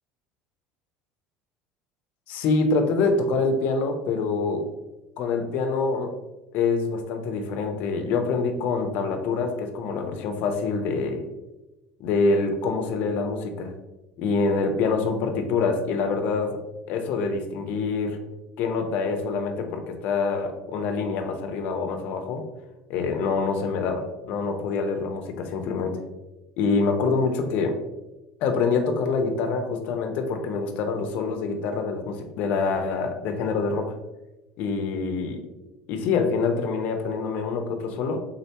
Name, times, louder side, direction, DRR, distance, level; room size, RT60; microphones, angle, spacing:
voice 1, 2.3-4.7 5.2-6.1 6.5-11.3 12.0-13.7 14.2-16.6 16.9-18.2 18.6-22.4 22.9-26.0 26.6-27.8 28.4-33.9 34.6-35.4 35.9-38.2, left 4 dB, 55° left, 5 dB, 0.6 m, -25 dB
3.7 x 3.3 x 2.9 m, 1.0 s
cardioid pair, 150°, 3 cm